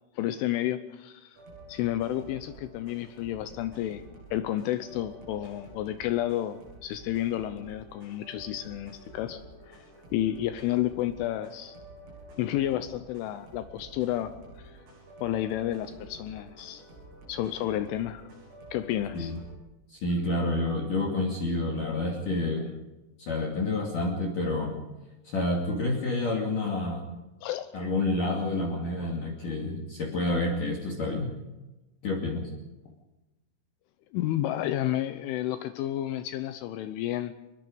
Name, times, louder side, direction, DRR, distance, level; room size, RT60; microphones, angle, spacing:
voice 1, 0.2-1.4 1.7-4.0 4.3-9.9 10.1-11.8 12.4-14.8 15.2-16.8 17.3-18.3 18.7-19.3 27.4-27.7 29.0-29.1 34.1-37.3, left 13 dB, 80° left, 10 dB, 3.2 m, -31 dB
sound 1, 1.4-19.6, right 1 dB, 85° right, 9.9 m, -50 dB
voice 2, 19.9-22.6 23.2-24.7 25.2-27.0 27.7-31.3 32.0-32.5, left 2 dB, 45° left, -1 dB, 3.5 m, -29 dB
25.0 x 21.0 x 5.2 m, 1.0 s
omnidirectional pair, 5.8 m